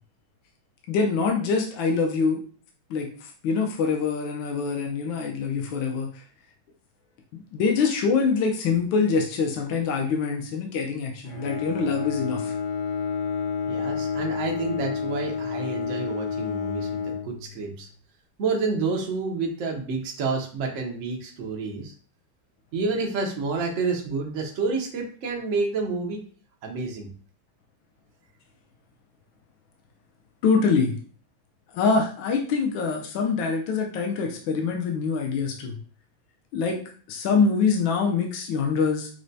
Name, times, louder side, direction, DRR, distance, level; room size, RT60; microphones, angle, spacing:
voice 1, 0.9-2.4 2.9-6.2 7.3-12.5 30.4-30.9 31.7-35.8 36.5-36.8 37.1-39.1, left 5 dB, 75° left, 1 dB, 1.4 m, -24 dB
Bowed string instrument, 11.2-17.9, left 6 dB, 60° left, 0.8 m, -30 dB
voice 2, 13.7-17.9 18.4-21.9 22.7-26.2 26.6-27.1, right 4 dB, 75° right, 1 dB, 0.7 m, -29 dB
6.3 x 2.2 x 2.6 m, 0.43 s
omnidirectional pair, 2.3 m